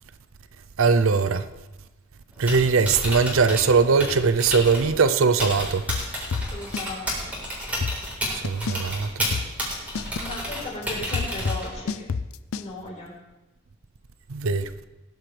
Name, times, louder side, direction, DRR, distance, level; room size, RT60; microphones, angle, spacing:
voice 1, 0.8-1.5 2.4-5.9 8.3-9.3 14.3-14.7, right 5 dB, 70° right, 0.6 m, -21 dB
Typing, 2.3-11.9, equal, 10° right, 4.2 m, -32 dB
sound 1, 5.9-6.9 7.2-7.3 7.6-8.9 9.3-12.7, left 5 dB, 75° left, 0.5 m, -29 dB
voice 2, 6.4-7.4 10.1-12.1 12.5-13.1, left 2 dB, 35° left, 4.6 m, -36 dB
19.5 x 10.5 x 3.4 m
head